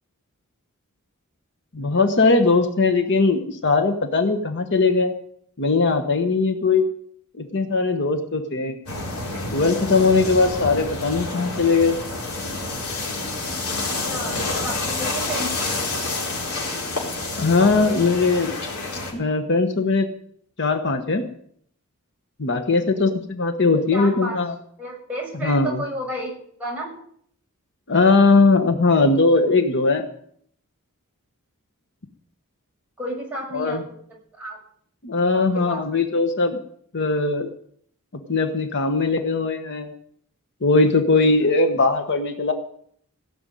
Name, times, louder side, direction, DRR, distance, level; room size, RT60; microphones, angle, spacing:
voice 1, 1.7-5.1 5.6-6.9 7.4-8.8 9.5-12.0 17.4-18.5 19.1-20.1 20.6-21.2 22.4-24.5 25.4-25.8 27.9-30.0 33.5-33.8 35.0-36.6 36.9-37.5 38.1-39.9 40.6-42.5, left 3 dB, 55° left, 6 dB, 1.2 m, -20 dB
sound 1, 8.9-19.1, left 2 dB, 70° left, 4.2 m, -28 dB
voice 2, 14.0-15.7 17.3-18.2 22.8-23.0 23.9-24.4 24.8-26.3 26.6-26.9 33.0-34.6 35.3-36.0, equal, 5° right, -4 dB, 6.4 m, -32 dB
16.5 x 6.9 x 9.2 m, 0.64 s
head